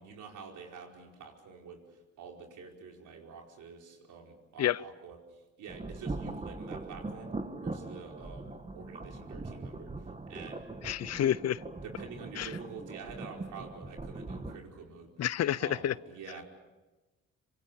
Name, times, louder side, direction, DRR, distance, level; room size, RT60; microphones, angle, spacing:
voice 1, 0.0-1.8 2.2-5.2 5.6-7.3 7.6-9.9 10.3-10.7 11.8-15.1 15.6-16.4, right 5 dB, 80° right, 1 dB, 5.0 m, -47 dB
sound 1, 5.7-14.6, right 3 dB, 20° right, 2.0 m, -41 dB
voice 2, 10.8-11.6 12.4-12.5 15.2-15.9, left 11 dB, 60° left, 20 dB, 0.7 m, -29 dB
27.0 x 25.0 x 7.2 m, 1.2 s
cardioid pair, 90°, 30 cm